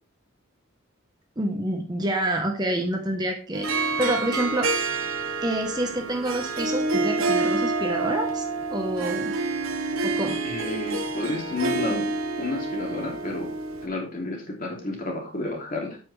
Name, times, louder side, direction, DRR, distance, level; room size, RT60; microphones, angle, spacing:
voice 1, 1.4-3.7 4.0-4.7 5.4-8.4 8.7-9.3 10.0-10.4, right 1 dB, 20° right, 3 dB, 1.1 m, -27 dB
Harp, 3.5-13.9, right 3 dB, 80° right, 1.3 m, -28 dB
voice 2, 10.4-12.1 12.4-13.5 13.8-16.0, left 2 dB, 40° left, 0 dB, 3.0 m, -31 dB
8.5 x 8.5 x 3.3 m, 0.38 s
head